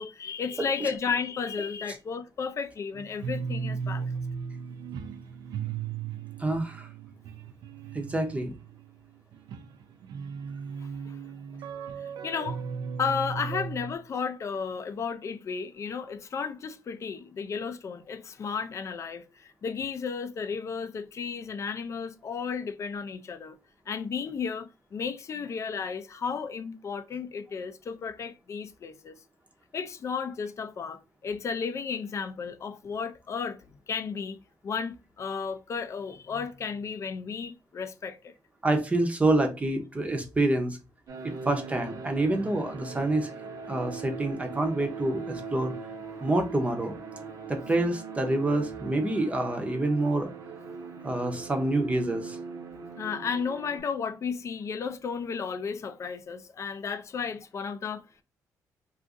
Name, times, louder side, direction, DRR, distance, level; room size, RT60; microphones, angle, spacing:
voice 1, 0.0-4.2 10.8-11.2 12.2-12.6 13.0-23.6 23.9-29.1 29.7-38.3 53.0-58.0, left 6 dB, 45° left, 0.4 m, -33 dB
voice 2, 0.6-0.9 6.4-6.9 7.9-8.5 13.5-13.6 38.6-40.8 41.2-43.3 43.7-45.7 46.2-47.0 47.5-50.3 51.0-52.4, right 2 dB, 20° right, 0.6 m, -27 dB
sound 1, 2.9-13.9, right 6 dB, 85° right, 0.4 m, -36 dB
sound 2, 41.1-53.8, right 5 dB, 60° right, 0.8 m, -40 dB
2.5 x 2.4 x 3.6 m
cardioid pair, 100°, 7 cm